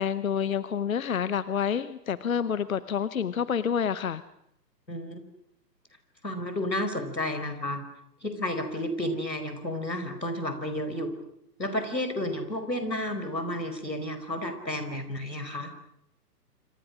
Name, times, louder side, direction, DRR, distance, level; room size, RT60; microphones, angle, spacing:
voice 1, 0.0-4.2, left 7 dB, 55° left, 16 dB, 1.0 m, -28 dB
voice 2, 4.9-5.2 6.2-7.8 8.2-11.1 11.6-15.7, left 1 dB, 90° left, 8 dB, 5.1 m, -31 dB
27.0 x 27.0 x 6.3 m, 0.75 s
figure-of-eight pair, 125°, 50 cm